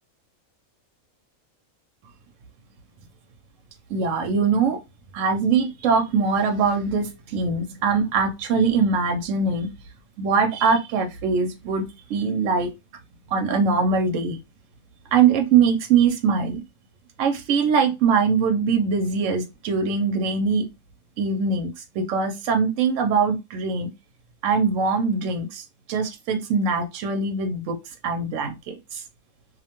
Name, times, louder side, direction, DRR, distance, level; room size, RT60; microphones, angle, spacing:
voice 1, 3.9-4.8 5.1-9.7 10.2-12.7 13.3-14.4 15.1-16.6 17.2-20.7 21.2-23.9 24.4-27.8 28.0-29.0, right 5 dB, 70° right, 0.9 m, -22 dB
2.4 x 2.1 x 2.9 m
omnidirectional pair, 1.4 m